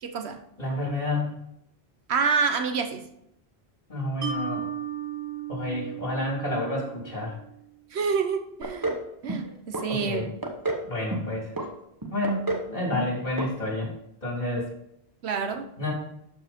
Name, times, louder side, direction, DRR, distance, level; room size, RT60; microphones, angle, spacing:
voice 1, 0.0-0.4 2.1-3.0 7.9-10.3 15.2-15.9, right 5 dB, 85° right, 8 dB, 1.2 m, -28 dB
voice 2, 0.6-1.4 3.9-4.6 5.5-7.3 9.9-10.3 10.8-11.5 12.1-13.9 14.2-14.7 15.8-15.9, left 1 dB, 45° left, -3 dB, 3.6 m, -29 dB
Mallet percussion, 4.2-7.5, right 7 dB, 35° right, 2.0 m, -35 dB
sound 1, 8.6-9.0 9.3-9.9 10.2-10.8 11.1-11.7 12.0-12.7 12.9-13.1 13.4-13.5 13.8-13.9, right 2 dB, 20° right, 1.1 m, -30 dB
12.0 x 5.2 x 4.4 m, 0.76 s
omnidirectional pair, 1.1 m